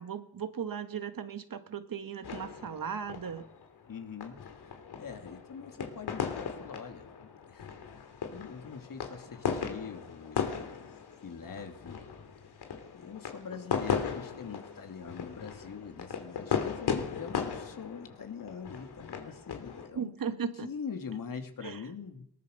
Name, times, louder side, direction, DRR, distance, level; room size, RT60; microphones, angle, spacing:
voice 1, 0.0-3.4 19.9-20.7 21.6-21.8, right 7 dB, 60° right, 9 dB, 1.8 m, -37 dB
sound 1, 2.2-19.9, left 6 dB, 80° left, 3.3 m, -37 dB
voice 2, 3.9-10.9 11.2-12.0 12.9-20.3 20.6-22.2, left 6 dB, 55° left, 5 dB, 2.8 m, -43 dB
21.5 x 20.0 x 6.7 m, 0.74 s
cardioid pair, 100°, 38 cm